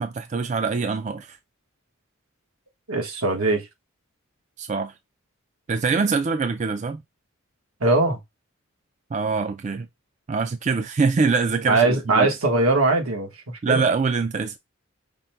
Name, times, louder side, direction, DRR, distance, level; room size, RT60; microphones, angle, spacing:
voice 1, 0.0-1.4 4.6-4.9 5.7-7.0 9.1-9.9 10.3-12.3 13.6-14.6, right 4 dB, 35° right, 0.3 m, -24 dB
voice 2, 2.9-3.6 7.8-8.2 11.7-13.8, right 2 dB, 85° right, 1.3 m, -21 dB
5.3 x 2.2 x 4.4 m
head